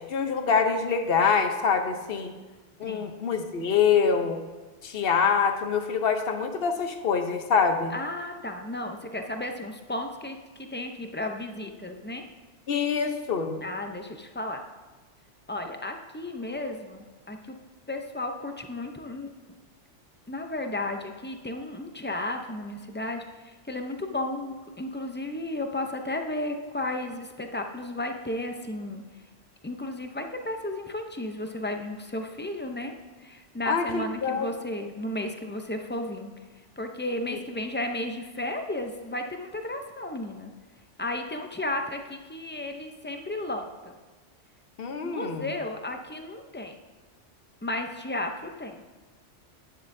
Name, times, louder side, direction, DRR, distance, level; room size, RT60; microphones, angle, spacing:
voice 1, 0.0-2.3 2.8-4.4 4.8-7.9 12.7-13.6 33.7-34.5 37.3-37.4 44.8-45.5, left 6 dB, 55° left, 6 dB, 1.0 m, -25 dB
voice 2, 7.9-12.2 13.6-14.6 15.5-17.6 17.9-19.3 20.3-29.0 29.6-32.9 33.2-40.5 41.0-44.0 45.0-46.8 47.6-48.8, left 1 dB, 15° left, 4 dB, 0.3 m, -34 dB
11.0 x 9.7 x 2.6 m, 1.3 s
omnidirectional pair, 1.2 m